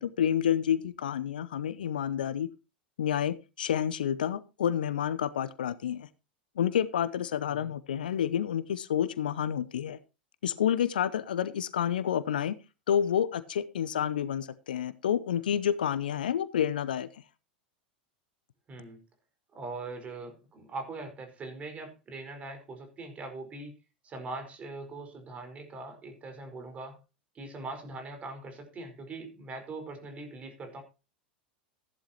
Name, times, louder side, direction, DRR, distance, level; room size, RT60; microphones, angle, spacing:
voice 1, 0.0-2.5 3.0-6.1 6.6-10.0 10.4-12.6 12.9-17.1, left 9 dB, 65° left, 17 dB, 0.7 m, -29 dB
voice 2, 18.7-19.0 19.5-23.7 24.0-27.0 27.3-30.8, right 3 dB, 25° right, 6 dB, 4.7 m, -41 dB
15.0 x 11.0 x 2.9 m, 0.30 s
figure-of-eight pair, 85°, 5 cm